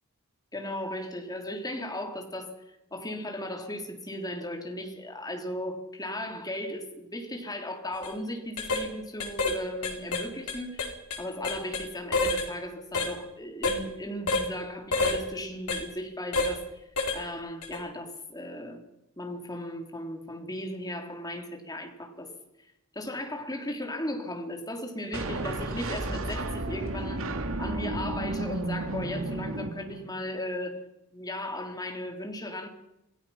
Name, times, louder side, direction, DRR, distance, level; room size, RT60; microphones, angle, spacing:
voice 1, 0.5-2.5 2.9-16.9 17.1-18.8 19.2-22.3 22.9-27.3 27.6-30.8 31.1-32.7, left 1 dB, 15° left, 3 dB, 3.6 m, -36 dB
sound 1, 7.9-8.1 8.6-8.9 9.2-9.6 9.8-11.9 12.1-12.5 12.9-13.1 13.6-13.8 14.3-14.5 14.9-15.2 15.7-15.8 16.3-16.5 17.0-17.2 17.6-17.8, left 3 dB, 75° left, 4.3 m, -28 dB
sound 2, 25.1-30.3, right 2 dB, 65° right, 2.4 m, -33 dB
28.0 x 19.0 x 5.8 m, 0.90 s
head